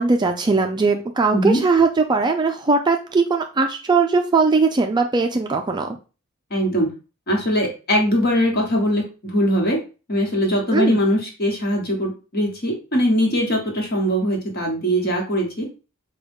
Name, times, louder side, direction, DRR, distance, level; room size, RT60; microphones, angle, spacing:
voice 1, 0.0-6.0 10.7-11.0, right 4 dB, 20° right, 4 dB, 0.3 m, -19 dB
voice 2, 6.5-6.9 7.3-9.8 10.1-15.7, equal, 45° left, 0 dB, 1.3 m, -21 dB
5.0 x 2.3 x 3.4 m, 0.33 s
head